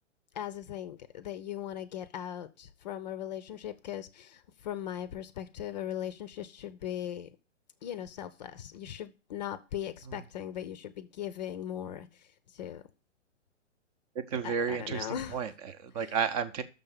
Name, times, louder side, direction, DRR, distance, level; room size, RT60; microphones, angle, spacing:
voice 1, 0.3-7.3 7.8-12.9 14.4-15.4 16.0-16.1, left 10 dB, 35° left, 14 dB, 0.6 m, -39 dB
voice 2, 14.1-16.6, right 6 dB, 30° right, 11 dB, 0.8 m, -32 dB
6.6 x 5.6 x 7.2 m, 0.32 s
figure-of-eight pair, 120°, 37 cm